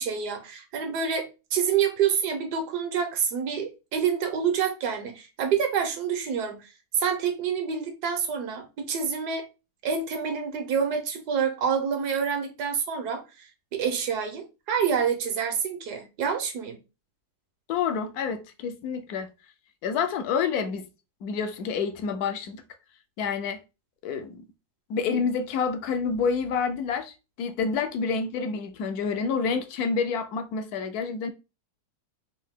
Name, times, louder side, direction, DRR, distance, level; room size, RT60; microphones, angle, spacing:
voice 1, 0.0-9.4 9.8-16.8, right 7 dB, 80° right, 1.4 m, -27 dB
voice 2, 17.7-19.3 19.8-20.9 21.2-22.6 23.2-23.6 24.0-24.5 24.9-31.3, left 5 dB, 75° left, 1.1 m, -28 dB
3.9 x 2.7 x 3.5 m
omnidirectional pair, 1.7 m